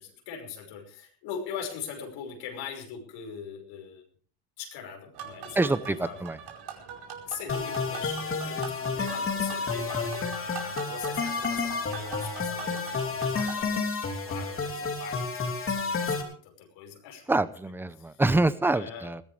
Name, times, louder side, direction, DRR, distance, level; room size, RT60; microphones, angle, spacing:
voice 1, 0.0-4.0 4.6-6.2 7.3-13.8 14.2-17.4 18.0-18.2 18.7-19.1, left 7 dB, 80° left, 4 dB, 5.7 m, -41 dB
sound 1, 5.1-13.6, right 6 dB, 55° right, 4.9 m, -42 dB
voice 2, 5.6-6.4 17.3-19.2, right 2 dB, 5° right, 15 dB, 0.7 m, -26 dB
sound 2, 7.5-16.2, left 4 dB, 30° left, 3.2 m, -30 dB
21.0 x 16.0 x 3.4 m, 0.43 s
cardioid pair, 135°, 45 cm